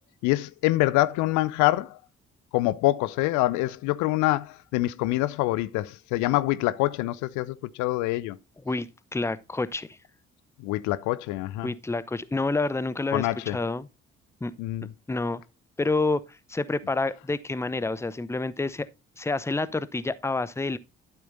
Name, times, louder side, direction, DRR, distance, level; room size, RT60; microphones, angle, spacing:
voice 1, 0.2-1.9 2.5-8.4 10.6-11.7 13.1-13.6 14.6-14.9, left 17 dB, 60° left, 0.6 m, -25 dB
voice 2, 8.6-10.0 11.6-13.9 14.4-14.5 15.1-15.4 15.8-18.9 19.2-20.8, left 3 dB, 10° left, 0.7 m, -28 dB
12.5 x 7.7 x 2.6 m
figure-of-eight pair, 40°, 34 cm